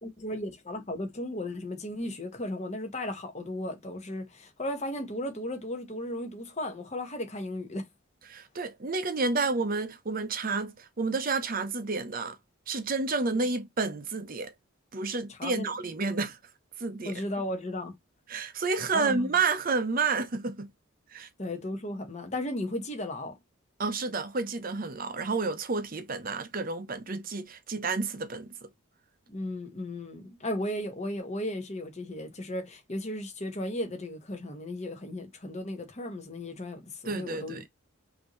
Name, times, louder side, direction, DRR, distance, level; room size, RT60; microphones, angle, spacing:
voice 1, 0.0-7.9 15.3-15.7 16.1-16.2 17.0-18.0 18.9-19.3 21.4-23.4 29.3-37.6, left 1 dB, 35° left, 1.2 m, -35 dB
voice 2, 8.3-12.4 12.7-14.5 14.9-16.4 16.8-17.2 18.3-20.7 21.1-21.3 23.8-28.7 37.1-37.7, right 4 dB, 45° right, 0.7 m, -30 dB
5.3 x 2.9 x 3.0 m
head